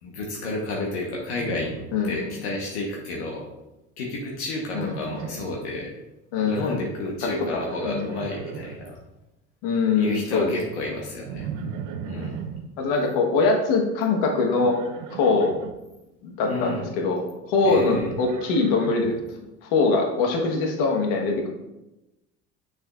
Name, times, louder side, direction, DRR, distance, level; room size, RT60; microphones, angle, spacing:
voice 1, 0.0-1.7 2.0-3.4 4.0-5.9 6.4-9.0 9.9-11.5 12.0-12.4 16.5-16.9 17.6-18.1, left 2 dB, 85° left, -2 dB, 1.1 m, -31 dB
Livestock farm animals working animals, 1.3-2.5 2.8-3.3 4.6-5.6 7.2-9.0 11.3-12.6 14.6-15.7 17.5-19.3, right 6 dB, 65° right, 0.7 m, -37 dB
voice 2, 1.9-2.3 4.7-4.9 6.3-6.8 7.5-8.1 9.6-10.5 12.1-12.3 12.8-14.8 15.1-15.5 16.2-19.1 19.6-21.5, left 4 dB, 70° left, 2 dB, 1.3 m, -23 dB
6.4 x 6.2 x 2.4 m, 0.96 s
supercardioid pair, 85°, 33 cm